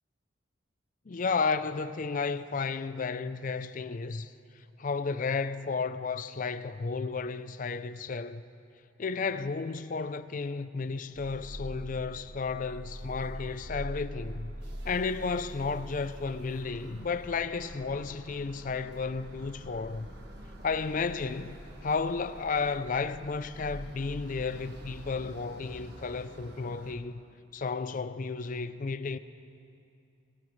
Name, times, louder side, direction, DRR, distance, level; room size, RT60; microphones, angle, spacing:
voice 1, 1.1-4.3 4.8-8.4 9.0-14.5 14.8-20.1 20.6-21.6 21.8-27.2 27.5-29.2, left 4 dB, 40° left, 0.4 m, -33 dB
sound 1, 11.1-26.9, equal, 55° right, 1.5 m, -44 dB
22.5 x 20.0 x 3.2 m
head